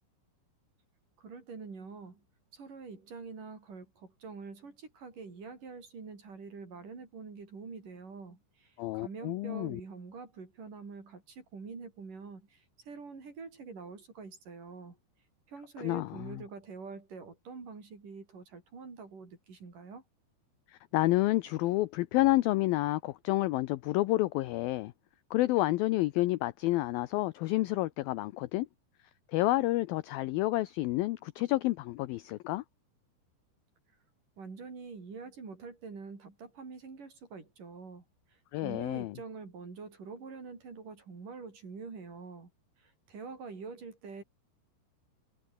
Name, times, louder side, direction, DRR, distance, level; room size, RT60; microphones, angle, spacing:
voice 1, 1.2-2.2 2.5-15.0 15.5-20.0 34.4-38.0 38.3-42.5 42.8-44.2, right 4 dB, 50° right, 6.9 m, -46 dB
voice 2, 8.8-9.8 15.8-16.4 20.9-24.9 25.3-28.7 29.3-32.6 38.5-39.1, left 18 dB, 85° left, 2.1 m, -29 dB
omnidirectional pair, 5.0 m